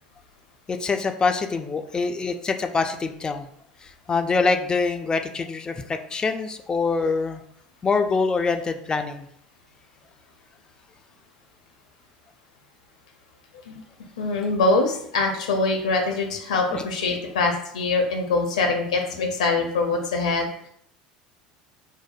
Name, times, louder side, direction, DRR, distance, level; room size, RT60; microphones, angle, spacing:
voice 1, 0.7-3.5 4.1-7.4 7.8-9.3 16.7-16.9, left 4 dB, 20° left, 6 dB, 0.3 m, -25 dB
voice 2, 14.2-20.7, left 3 dB, 75° left, 3 dB, 0.7 m, -24 dB
4.6 x 2.1 x 2.5 m, 0.67 s
figure-of-eight pair, 70°, 4 cm